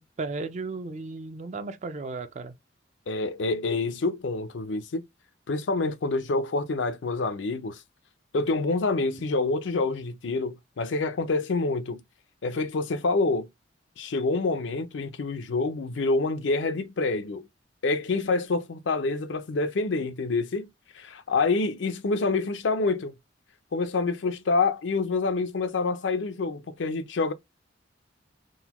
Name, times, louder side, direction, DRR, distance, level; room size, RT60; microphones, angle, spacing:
voice 1, 0.0-2.5, right 3 dB, 40° right, 0.4 m, -35 dB
voice 2, 3.1-5.0 5.5-7.8 8.3-12.0 12.4-13.5 14.0-17.4 17.8-20.7 21.0-23.1 23.7-27.3, left 3 dB, 80° left, 0.5 m, -27 dB
3.9 x 2.2 x 2.9 m
head